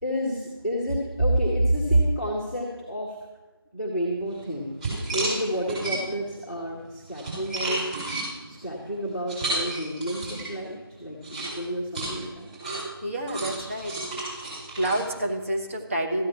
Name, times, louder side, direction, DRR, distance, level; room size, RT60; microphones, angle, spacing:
voice 1, 0.0-3.2 3.7-4.8 5.1-7.9 8.5-12.5, right 1 dB, ahead, -15 dB, 0.9 m, -28 dB
sound 1, 4.3-4.4 4.8-6.3 6.8-10.6 11.2-15.6, right 2 dB, 20° right, 5.2 m, -32 dB
voice 2, 13.0-13.9 14.8-16.3, right 1 dB, 35° right, 1 dB, 1.3 m, -28 dB
14.0 x 9.1 x 5.8 m, 1.2 s
figure-of-eight pair, 165°, 13 cm